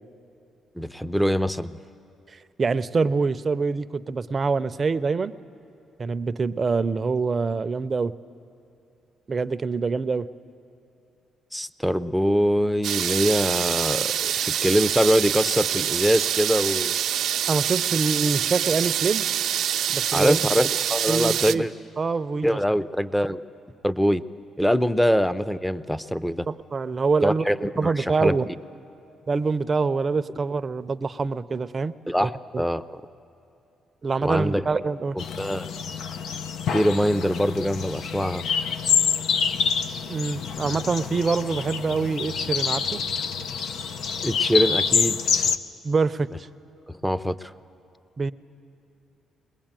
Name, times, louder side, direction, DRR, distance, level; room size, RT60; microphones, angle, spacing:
voice 1, 0.8-1.7 11.5-17.0 20.1-21.7 22.4-23.4 23.8-24.2 24.6-26.5 27.2-28.4 32.1-32.3 32.6-33.0 34.2-34.6 35.2-35.7 36.7-38.5 44.2-45.4 46.9-47.5, equal, 5° left, 15 dB, 0.6 m, -23 dB
voice 2, 2.3-5.3 6.0-8.1 9.3-10.3 17.5-19.3 19.9-20.4 21.1-21.7 22.0-22.6 26.5-27.4 27.8-28.5 29.3-31.9 32.2-32.6 34.0-35.2 40.1-43.0 45.8-46.3 48.2-48.3, right 4 dB, 35° right, 12 dB, 0.6 m, -25 dB
sound 1, 12.8-21.5, right 10 dB, 75° right, 0.6 m, -25 dB
sound 2, 35.2-45.6, left 6 dB, 75° left, 0.7 m, -26 dB
21.5 x 20.5 x 9.0 m, 2.7 s
cardioid pair, 90°, 0 cm